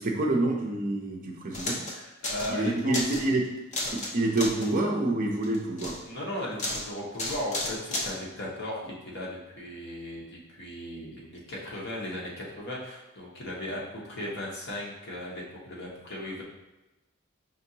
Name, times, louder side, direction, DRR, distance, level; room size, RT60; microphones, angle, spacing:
voice 1, 0.0-1.8 2.5-3.4 3.9-6.0, right 2 dB, 40° right, 1 dB, 0.5 m, -27 dB
sound 1, 1.5-1.9 2.2-2.5 2.8-3.3 3.7-4.1 4.4-4.8 5.4-6.0 6.6-6.8 7.1-8.1, left 2 dB, 35° left, 0.7 m, -32 dB
voice 2, 1.9-3.2 6.0-16.4, left 1 dB, 55° left, -3 dB, 1.0 m, -37 dB
5.2 x 2.8 x 2.7 m, 1.0 s
head